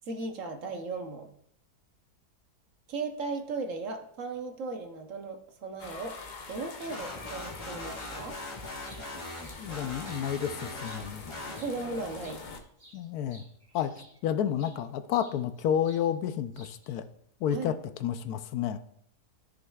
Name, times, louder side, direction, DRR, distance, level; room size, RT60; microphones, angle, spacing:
voice 1, 0.1-1.3 2.9-6.2 6.5-8.4 11.6-12.4 17.5-17.7, right 3 dB, 60° right, 5 dB, 1.1 m, -36 dB
sound 1, 5.8-12.6, left 4 dB, 45° left, 0.6 m, -45 dB
sound 2, 6.9-12.1, left 1 dB, 20° left, 1.5 m, -41 dB
sound 3, 7.9-8.2 8.6-10.3 10.7-11.3 11.5-14.8 15.2-16.1 16.3-17.0, equal, 25° right, 3.0 m, -56 dB
voice 2, 9.6-11.2 12.9-13.4 13.7-13.9 14.2-17.0 17.4-17.7 18.0-18.8, left 9 dB, 75° left, 10 dB, 1.1 m, -30 dB
14.0 x 6.4 x 2.3 m, 0.69 s
omnidirectional pair, 1.7 m